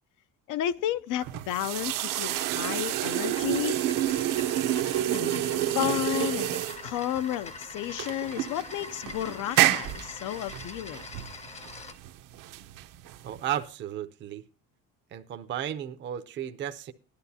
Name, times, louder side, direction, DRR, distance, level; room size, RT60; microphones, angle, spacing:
voice 1, 0.5-3.8 5.1-5.5 5.7-6.5 6.8-11.0, left 11 dB, 60° left, 0.6 m, -32 dB
sound 1, 1.2-13.6, right 13 dB, 65° right, 0.9 m, -29 dB
sound 2, 1.9-12.0, left 4 dB, 20° left, 0.6 m, -44 dB
voice 2, 13.2-14.4 15.1-16.9, right 10 dB, 30° right, 0.6 m, -34 dB
17.5 x 11.5 x 2.7 m
cardioid pair, 165°, 35 cm